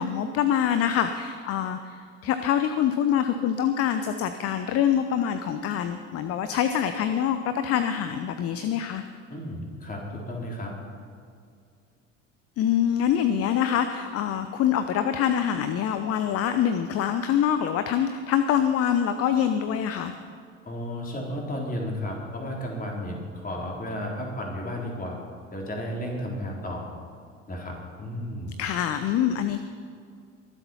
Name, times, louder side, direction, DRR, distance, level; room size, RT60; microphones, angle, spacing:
voice 1, 0.0-9.0 12.6-20.1 28.6-29.6, left 9 dB, 40° left, 9 dB, 0.8 m, -25 dB
voice 2, 9.3-10.7 20.7-25.2 25.5-26.8 27.5-28.6, equal, 20° left, -1 dB, 4.1 m, -33 dB
23.0 x 8.0 x 5.6 m, 2.3 s
figure-of-eight pair, 65°, 38 cm